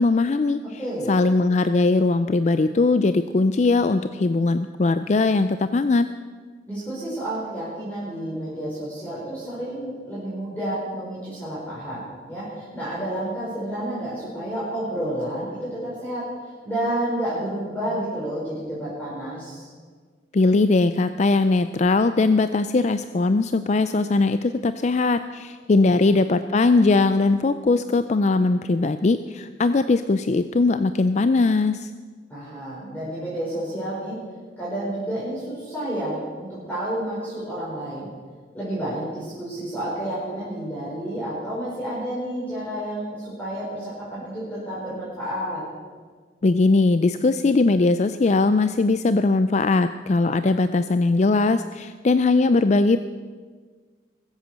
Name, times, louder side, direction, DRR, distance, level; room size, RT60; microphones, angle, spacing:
voice 1, 0.0-0.6 1.1-6.1 20.3-31.9 46.4-53.0, left 3 dB, 40° left, 11 dB, 0.4 m, -20 dB
voice 2, 0.8-1.1 6.7-16.3 16.6-19.7 25.9-26.0 32.3-34.2 34.6-38.1 38.5-45.6, right 1 dB, 10° left, -9 dB, 4.7 m, -30 dB
21.5 x 8.2 x 6.7 m, 1.5 s
head